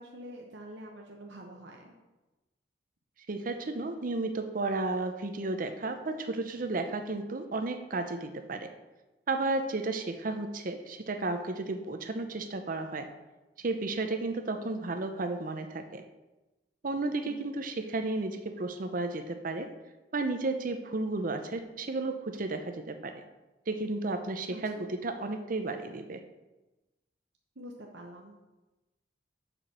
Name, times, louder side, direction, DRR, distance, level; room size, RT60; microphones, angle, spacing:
voice 1, 0.0-1.9 17.2-17.5 24.5-24.6 27.6-28.4, equal, 75° right, 0 dB, 1.0 m, -46 dB
voice 2, 3.3-8.7 9.3-13.1 13.6-16.0 16.8-19.7 20.1-23.2 23.7-26.2, right 2 dB, 50° right, 7 dB, 0.7 m, -33 dB
7.9 x 6.0 x 6.1 m, 1.1 s
head